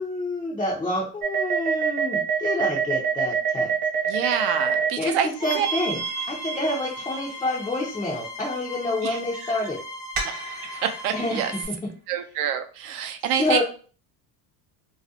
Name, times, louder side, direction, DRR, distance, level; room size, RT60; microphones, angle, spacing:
voice 1, 0.0-3.7 5.0-5.2 5.4-9.8 11.1-11.9 13.4-13.6, left 1 dB, 10° left, -5 dB, 0.3 m, -28 dB
sound 1, 1.2-4.9 5.4-7.6 10.2-11.2, right 6 dB, 45° right, 1.0 m, -26 dB
voice 2, 4.1-5.3 5.5-5.7 9.0-9.2 10.2-10.3 10.7-11.5 12.1-13.6, right 8 dB, 70° right, 7 dB, 0.6 m, -27 dB
sound 2, 5.3-11.6, left 2 dB, 80° left, 0.8 m, -38 dB
2.4 x 2.0 x 2.6 m, 0.39 s
supercardioid pair, 95°, 49 cm